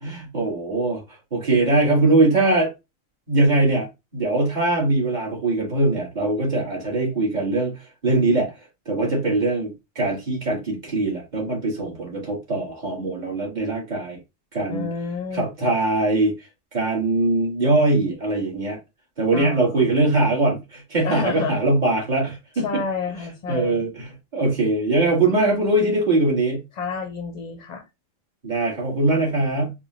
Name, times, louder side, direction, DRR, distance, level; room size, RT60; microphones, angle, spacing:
voice 1, 0.0-1.0 1.3-2.7 3.3-3.9 4.1-8.5 8.9-14.2 14.5-14.9 15.3-16.3 16.7-18.8 19.2-22.8 23.5-26.6 28.4-29.7, right 2 dB, 35° right, 1.8 m, -21 dB
voice 2, 14.7-15.7 19.3-19.9 21.0-21.6 22.6-23.8 26.8-27.8, left 4 dB, 40° left, 0.7 m, -30 dB
4.8 x 2.4 x 3.0 m
omnidirectional pair, 1.4 m